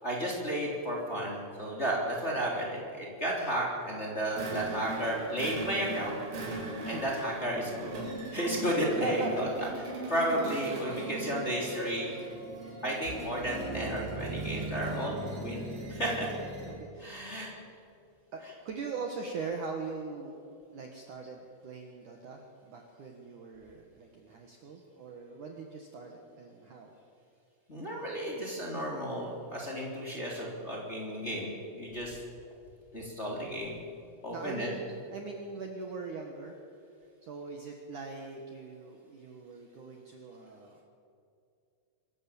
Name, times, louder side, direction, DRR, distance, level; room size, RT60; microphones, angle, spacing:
voice 1, 0.0-6.2 6.9-7.9 8.3-12.1 12.8-15.6 15.9-16.3 17.0-17.5 18.4-18.5 27.7-32.2 32.9-33.7 34.2-34.7, right 1 dB, 15° left, -3 dB, 3.1 m, -33 dB
sound 1, 4.3-16.9, right 2 dB, 85° right, 5.8 m, -39 dB
voice 2, 8.9-9.3 16.7-17.2 18.3-20.4 20.7-26.9 34.3-36.5 37.2-40.8, right 4 dB, 60° right, 2 dB, 2.4 m, -41 dB
25.5 x 15.0 x 7.1 m, 2.4 s
omnidirectional pair, 5.1 m